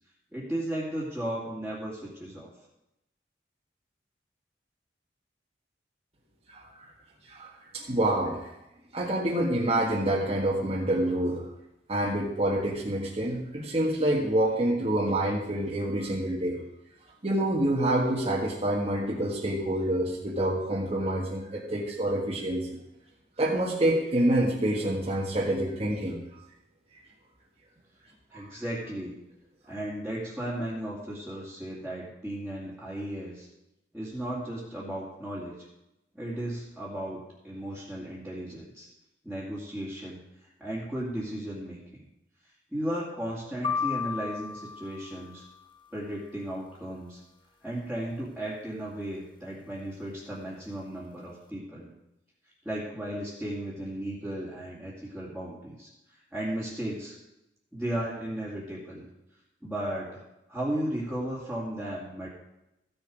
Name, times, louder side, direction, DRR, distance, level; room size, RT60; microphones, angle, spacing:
voice 1, 0.3-2.5 28.3-29.1 29.7-33.5 33.9-35.7 36.1-38.9 39.2-40.2 40.6-42.0 42.7-45.4 45.9-47.2 47.6-51.9 52.6-57.1 57.7-59.1 59.6-60.2 60.5-62.3, right 1 dB, ahead, -9 dB, 2.4 m, -35 dB
voice 2, 6.5-6.9 7.3-8.5 8.9-11.5 11.9-16.6 17.2-22.7 23.4-26.2 28.3-28.6, right 1 dB, 35° right, -5 dB, 1.5 m, -27 dB
sound 1, 43.6-45.8, left 6 dB, 25° left, 1.0 m, -34 dB
14.5 x 7.0 x 5.0 m, 0.91 s
head